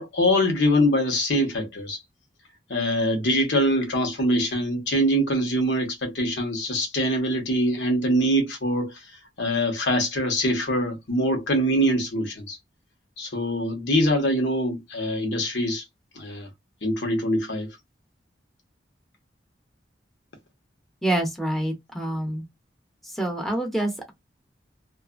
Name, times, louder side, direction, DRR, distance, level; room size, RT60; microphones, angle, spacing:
voice 1, 0.0-2.0 2.7-9.1 9.4-12.6 13.2-15.8 16.1-16.5 16.8-17.8, equal, 80° left, 1.1 m, -24 dB
voice 2, 21.0-22.4 23.1-24.1, right 1 dB, ahead, 0.7 m, -26 dB
2.6 x 2.4 x 2.4 m
head